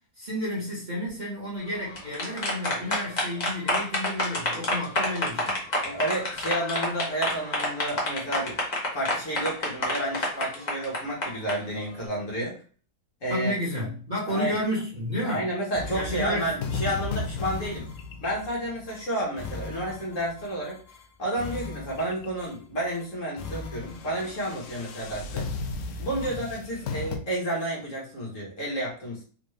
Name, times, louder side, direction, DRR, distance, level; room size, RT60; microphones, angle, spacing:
voice 1, 0.2-5.6 13.3-15.5 15.9-16.5 26.2-26.4, left 1 dB, 30° right, -7 dB, 1.3 m, -31 dB
sound 1, 1.8-11.5, left 1 dB, 30° left, 0.9 m, -28 dB
voice 2, 5.8-8.6 8.9-12.5 13.2-13.5 14.3-14.5 15.2-17.9 18.2-20.8 21.2-25.5 26.0-29.2, right 1 dB, 50° left, -4 dB, 1.5 m, -31 dB
sound 2, 15.7-21.0 21.4-22.5 22.9-23.1 23.4-27.2, left 4 dB, 70° left, 0.7 m, -36 dB
3.7 x 2.5 x 3.1 m, 0.41 s
omnidirectional pair, 1.8 m